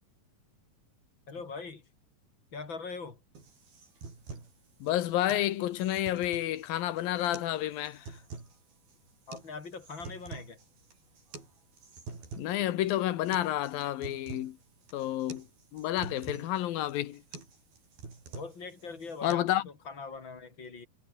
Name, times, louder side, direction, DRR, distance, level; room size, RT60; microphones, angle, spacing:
voice 1, 1.3-1.8 2.5-3.2 9.3-10.6 18.4-19.4 19.9-20.9, left 4 dB, 35° left, 3.8 m, -41 dB
sound 1, 3.4-19.4, right 4 dB, 85° right, 9.3 m, -47 dB
voice 2, 4.8-8.2 12.4-14.6 14.9-15.5 15.7-17.2 19.2-19.7, left 13 dB, 80° left, 2.9 m, -30 dB
omnidirectional pair, 4.2 m